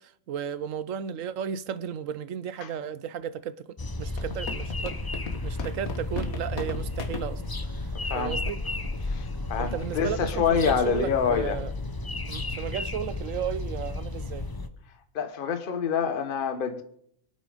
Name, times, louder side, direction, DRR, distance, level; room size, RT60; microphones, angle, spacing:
voice 1, 0.0-5.1 5.4-7.4 7.7-8.6 9.6-11.7 12.3-14.5, right 8 dB, 70° right, 1.1 m, -34 dB
sound 1, 3.8-14.7, left 2 dB, 20° left, 0.7 m, -33 dB
sound 2, 4.2-7.3 8.0-8.1 8.5-8.6 8.8-9.1 9.5-9.7, left 5 dB, 75° left, 1.9 m, -37 dB
voice 2, 7.9-8.4 9.0-11.6 15.1-16.8, left 7 dB, 40° left, 1.2 m, -27 dB
24.5 x 8.9 x 5.0 m
omnidirectional pair, 1.5 m